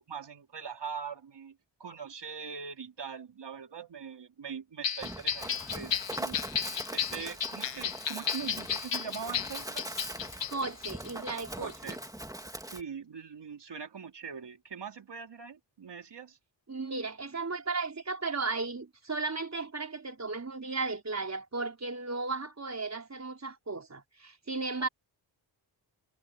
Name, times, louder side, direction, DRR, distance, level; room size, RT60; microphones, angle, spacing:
voice 1, 0.0-6.5 6.9-9.9 11.1-11.2 11.6-12.0 12.7-16.4 24.8-24.9, right 6 dB, 65° right, 3.6 m, -42 dB
sound 1, 4.8-11.3 11.7-11.9, left 8 dB, 75° left, 1.7 m, -34 dB
Run, 5.0-12.8, right 1 dB, 10° right, 2.1 m, -41 dB
sound 2, 5.2-12.1, left 4 dB, 45° left, 6.1 m, -56 dB
voice 2, 10.5-12.0 16.7-24.9, right 3 dB, 35° right, 4.6 m, -35 dB
cardioid pair, 70°, 44 cm